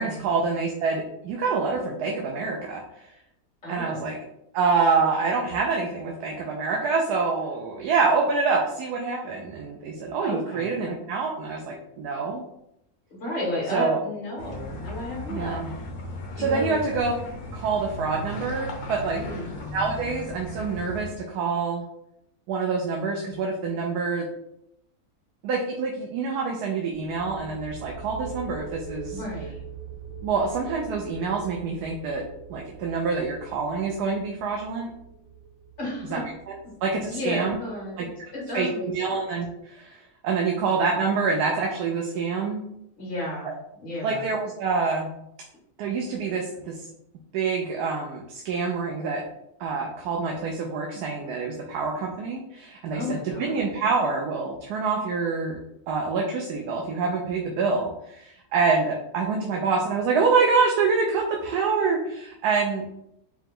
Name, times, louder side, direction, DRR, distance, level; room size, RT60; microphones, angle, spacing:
voice 1, 0.0-2.8 3.7-4.2 4.5-12.4 13.7-14.1 15.3-15.7 16.4-17.1 17.5-19.2 19.7-21.8 22.5-24.3 25.4-29.2 30.2-32.2 32.5-34.9 36.1-36.2 36.5-36.6 36.8-37.6 38.0-38.1 38.5-40.0 40.2-42.6 43.4-43.5 44.0-45.1 45.8-46.8 47.3-49.2 49.6-55.6 55.9-62.9, right 4 dB, 90° right, 0 dB, 1.2 m, -26 dB
voice 2, 3.6-4.0 10.1-10.8 13.1-15.6 16.3-16.8 19.1-19.5 29.1-29.6 35.8-36.2 37.1-38.0 38.3-39.1 43.0-43.5 43.8-44.3 52.9-53.6, left 1 dB, 35° left, -4 dB, 1.6 m, -33 dB
sound 1, 14.4-21.1, left 2 dB, 75° left, 1.5 m, -36 dB
sound 2, 26.9-38.5, right 5 dB, 35° right, 0.5 m, -42 dB
4.8 x 2.2 x 3.7 m, 0.78 s
omnidirectional pair, 1.6 m